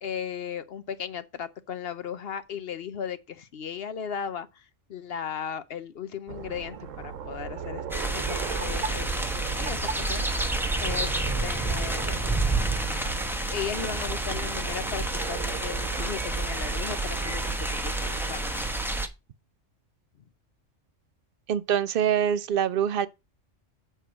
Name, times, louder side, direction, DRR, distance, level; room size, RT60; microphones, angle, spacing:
voice 1, 0.0-7.8 8.1-9.2 9.6-12.3 13.5-18.6, left 8 dB, 55° left, 0.8 m, -36 dB
sound 1, 6.3-18.9, right 7 dB, 80° right, 1.2 m, -38 dB
sound 2, 7.9-19.1, right 2 dB, ahead, 0.8 m, -29 dB
voice 2, 21.5-23.1, right 9 dB, 55° right, 0.7 m, -24 dB
8.0 x 4.5 x 6.0 m
omnidirectional pair, 1.3 m